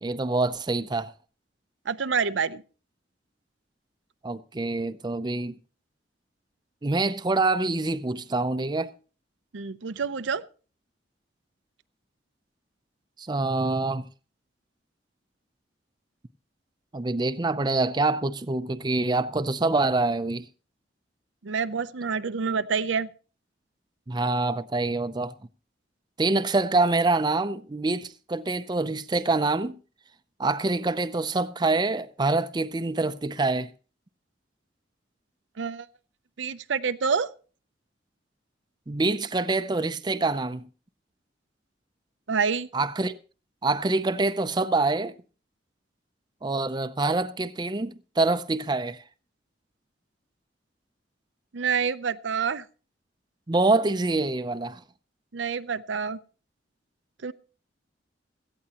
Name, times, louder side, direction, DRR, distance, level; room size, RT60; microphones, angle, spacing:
voice 1, 0.0-1.1 4.2-5.6 6.8-8.9 13.2-14.1 16.9-20.4 24.1-25.3 26.2-29.8 30.4-33.7 38.9-40.6 42.7-43.2 43.6-45.1 46.4-49.0 53.5-54.8, right 3 dB, 25° right, 0.5 m, -25 dB
voice 2, 1.9-2.6 9.5-10.4 21.4-23.1 35.6-35.9 36.4-37.3 42.3-42.7 51.5-52.7 55.3-56.2 57.2-57.3, right 6 dB, 80° right, 0.6 m, -27 dB
17.0 x 13.5 x 2.9 m
head